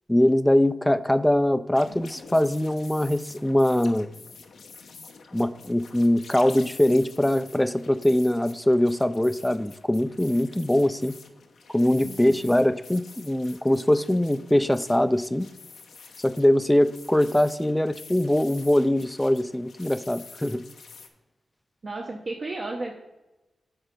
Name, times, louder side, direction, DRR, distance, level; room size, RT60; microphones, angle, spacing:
voice 1, 0.1-4.1 5.3-11.2 11.7-15.5 16.2-20.6, left 1 dB, 10° left, 13 dB, 0.4 m, -22 dB
sound 1, 1.7-21.1, left 5 dB, 85° left, 0.8 m, -48 dB
voice 2, 12.0-12.5 21.8-22.9, right 2 dB, 50° right, -2 dB, 0.9 m, -34 dB
9.0 x 4.3 x 5.1 m, 1.0 s
cardioid pair, 80°, 0 cm